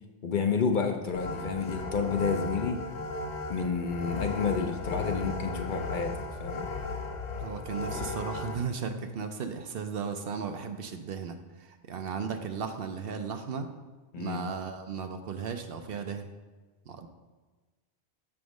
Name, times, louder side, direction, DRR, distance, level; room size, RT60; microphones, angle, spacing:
voice 1, 0.2-2.8 3.5-6.7 14.1-14.4, left 5 dB, 55° left, 4 dB, 0.7 m, -30 dB
sound 1, 1.1-8.5, left 3 dB, 75° left, 1.1 m, -36 dB
voice 2, 7.4-13.7 14.2-16.3 16.9-17.1, right 6 dB, 65° right, 7 dB, 0.8 m, -35 dB
6.9 x 3.5 x 6.3 m, 1.3 s
omnidirectional pair, 1.1 m